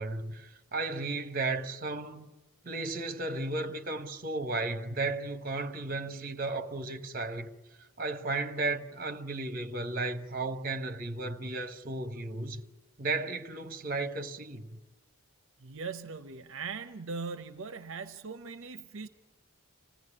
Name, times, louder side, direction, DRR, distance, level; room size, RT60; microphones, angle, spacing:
voice 1, 0.0-2.3 2.6-7.5 8.0-12.6 13.0-14.8, right 2 dB, 40° right, 1.1 m, -34 dB
voice 2, 15.6-19.1, right 5 dB, 65° right, 0.7 m, -40 dB
26.0 x 17.0 x 10.0 m
head